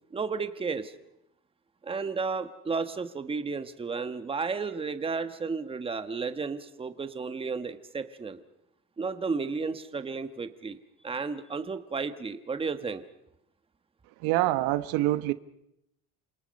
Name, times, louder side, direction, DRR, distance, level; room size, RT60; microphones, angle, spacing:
voice 1, 0.1-0.9 1.8-8.4 9.0-10.8 11.0-13.0, right 4 dB, 15° right, 1.3 m, -33 dB
voice 2, 14.2-15.3, right 16 dB, 90° right, 1.2 m, -25 dB
28.5 x 26.5 x 5.3 m
cardioid pair, 150°, 35 cm